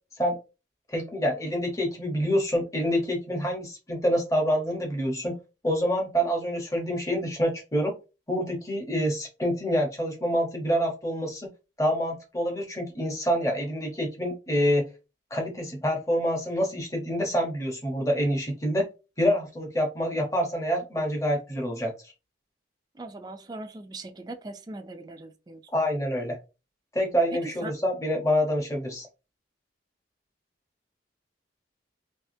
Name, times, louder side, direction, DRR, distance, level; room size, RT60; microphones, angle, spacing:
voice 1, 0.9-5.4 5.6-7.9 8.3-11.5 11.8-14.9 15.3-18.8 19.2-21.9 25.7-26.4 26.9-29.1, equal, 15° left, 0.9 m, -27 dB
voice 2, 23.0-25.6 27.6-27.7, right 2 dB, 20° right, 0.3 m, -40 dB
3.4 x 2.8 x 2.6 m
head